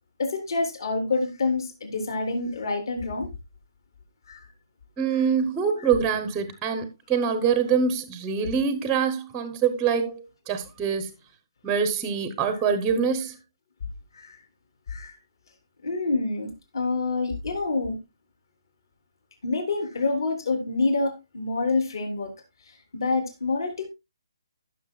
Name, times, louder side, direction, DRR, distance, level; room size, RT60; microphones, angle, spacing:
voice 1, 0.2-3.3 4.3-4.4 14.1-14.4 14.9-15.2 15.8-18.0 19.4-22.3 22.9-23.9, left 3 dB, 60° left, 3.4 m, -27 dB
voice 2, 5.0-11.1 11.6-13.4, right 6 dB, 10° right, 0.7 m, -25 dB
15.5 x 6.5 x 2.3 m
hypercardioid pair, 170°, 3 cm